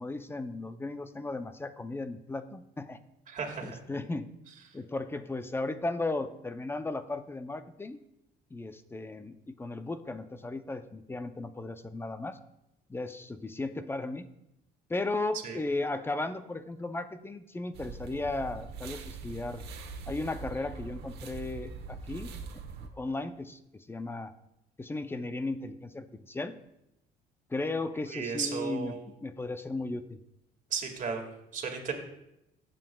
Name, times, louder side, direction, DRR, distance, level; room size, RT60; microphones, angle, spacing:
voice 1, 0.0-3.0 3.6-4.3 4.7-8.0 8.5-12.4 12.9-14.3 14.9-19.6 20.1-22.4 23.0-24.3 24.8-26.5 27.5-30.2, left 2 dB, 15° left, 10 dB, 0.5 m, -35 dB
voice 2, 3.3-3.8 15.4-15.6 28.1-29.0 30.7-31.3 31.5-31.9, right 6 dB, 50° right, 2 dB, 1.9 m, -34 dB
sound 1, 17.7-22.9, right 4 dB, 80° right, 1.1 m, -42 dB
15.5 x 7.6 x 2.3 m, 0.83 s
cardioid pair, 110°, 17 cm